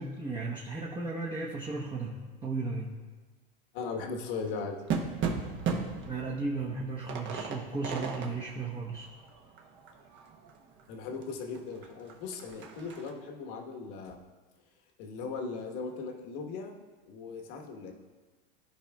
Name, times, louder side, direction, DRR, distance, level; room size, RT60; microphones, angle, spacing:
voice 1, 0.0-2.9 6.1-9.1, right 3 dB, 15° right, -4 dB, 1.0 m, -35 dB
voice 2, 3.7-4.8 10.9-14.2 15.0-16.8 17.1-17.9, left 4 dB, 60° left, 2 dB, 1.3 m, -38 dB
sound 1, 3.9-10.8 11.2-11.3 11.5-13.1, right 5 dB, 40° right, 1.2 m, -37 dB
14.5 x 5.0 x 2.3 m, 1.3 s
hypercardioid pair, 115°, 30 cm